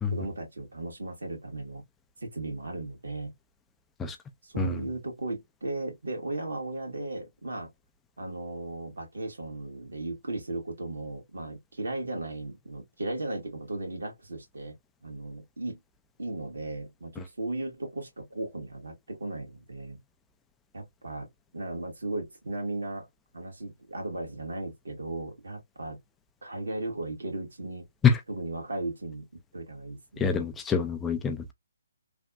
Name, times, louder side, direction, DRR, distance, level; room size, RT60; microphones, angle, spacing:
voice 1, 0.1-1.8 2.2-3.3 4.4-7.7 8.2-14.8 15.0-15.8 16.2-20.0 20.7-21.3 21.5-23.1 23.3-26.0 26.4-27.9 28.3-29.2 29.5-30.3, right 2 dB, 75° right, 1.6 m, -36 dB
voice 2, 30.2-31.5, left 6 dB, 10° left, 0.4 m, -25 dB
3.3 x 2.2 x 2.5 m
figure-of-eight pair, 145°, 0 cm